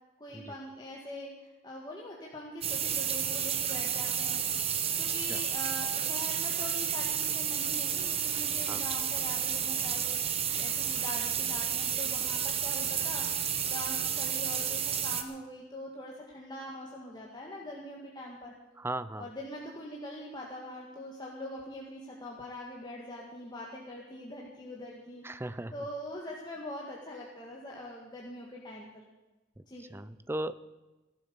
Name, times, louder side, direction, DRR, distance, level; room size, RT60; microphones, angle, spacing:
voice 1, 0.2-4.4 5.0-10.2 10.6-18.5 19.2-29.0 29.7-29.8, left 1 dB, 20° left, -3 dB, 1.9 m, -43 dB
sound 1, 2.6-15.2, right 8 dB, 30° right, 1.1 m, -31 dB
voice 2, 18.8-19.3 25.2-25.7 29.9-30.5, right 1 dB, 10° right, 14 dB, 0.5 m, -36 dB
17.0 x 11.5 x 7.0 m, 1.1 s
head